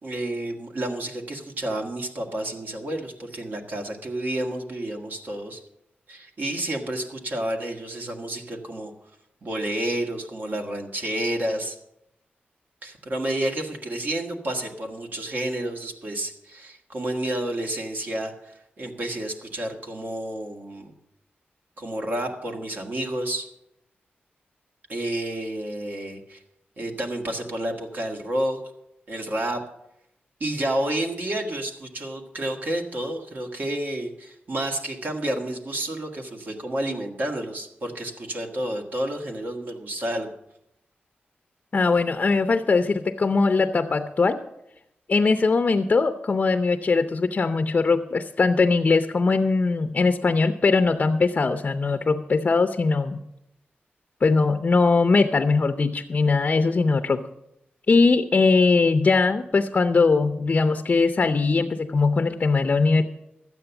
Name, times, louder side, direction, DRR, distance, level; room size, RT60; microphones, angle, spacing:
voice 1, 0.0-5.6 6.1-8.9 9.4-11.8 12.8-20.9 21.8-23.5 24.9-26.4 26.8-28.6 29.1-29.7 30.4-40.3, right 1 dB, 50° right, 2 dB, 1.7 m, -30 dB
voice 2, 41.7-44.4 45.1-53.2 54.2-57.2 57.9-63.0, left 4 dB, 40° left, 7 dB, 0.6 m, -21 dB
12.5 x 8.9 x 7.0 m, 0.83 s
wide cardioid pair, 150°, 4 cm